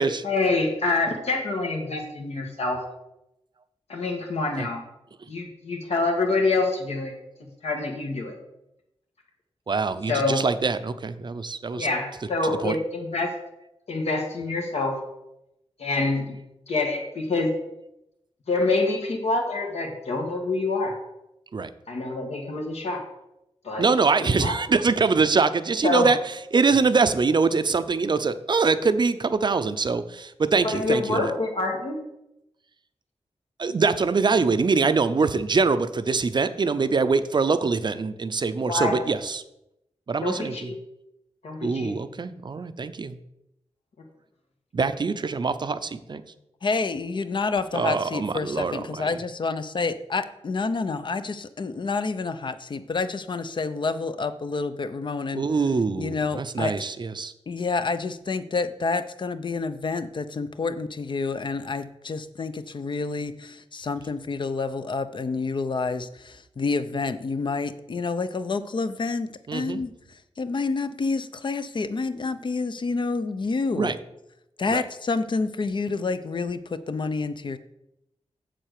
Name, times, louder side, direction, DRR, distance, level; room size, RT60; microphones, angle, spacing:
voice 1, 0.2-2.8 3.9-4.8 5.3-7.1 7.6-8.3 10.1-10.4 11.8-13.4 13.9-15.0 15.8-16.4 16.7-17.5 18.5-21.0 21.9-23.0 23.6-23.9 24.2-24.6 25.8-26.2 30.6-32.0 38.7-39.0 40.2-40.8 41.4-41.9, left 3 dB, 70° left, 1 dB, 1.7 m, -26 dB
voice 2, 9.7-11.9 12.4-12.8 21.5-21.7 23.8-31.3 33.6-39.4 40.1-40.7 41.6-43.2 44.7-46.2 47.7-49.1 55.3-57.3 69.5-69.8 73.8-74.0 74.7-74.8, right 4 dB, 45° right, 12 dB, 0.6 m, -24 dB
voice 3, 46.6-55.4 56.0-56.8 57.5-73.9 74.6-77.6, left 4 dB, 45° left, 11 dB, 0.6 m, -28 dB
7.7 x 7.6 x 6.6 m, 0.85 s
wide cardioid pair, 150°, 11 cm